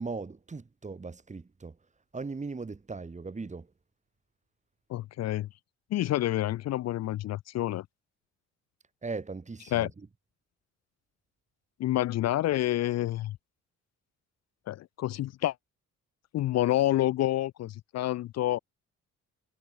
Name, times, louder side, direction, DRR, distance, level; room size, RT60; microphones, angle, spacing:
voice 1, 0.0-1.8 2.1-3.7 9.0-10.1, right 4 dB, 25° right, 2.3 m, -38 dB
voice 2, 4.9-5.5 5.9-7.8 9.7-9.9 11.8-13.4 14.7-15.5 16.3-18.6, left 14 dB, 60° left, 0.5 m, -28 dB
cardioid pair, 90°, 30 cm